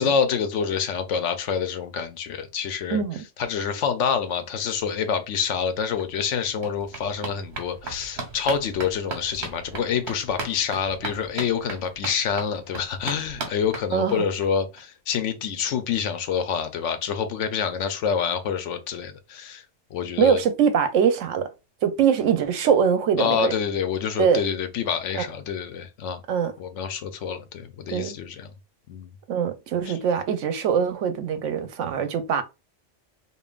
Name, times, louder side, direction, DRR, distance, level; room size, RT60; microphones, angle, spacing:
voice 1, 0.0-3.0 3.4-19.7 19.9-20.4 23.2-26.2 26.6-28.5 28.9-29.1 29.9-30.0, left 7 dB, 80° left, 1.0 m, -27 dB
sound 1, 5.7-5.8 6.0-14.5 14.8-14.9 15.1-15.2 15.5-15.6, right 3 dB, 65° right, 1.3 m, -37 dB
voice 2, 13.9-14.2 20.2-21.5 21.8-23.5 24.2-24.4 25.2-25.3 26.3-26.5 27.9-28.1 29.3-32.4, right 7 dB, 85° right, 1.0 m, -22 dB
5.2 x 2.5 x 2.4 m
omnidirectional pair, 1.2 m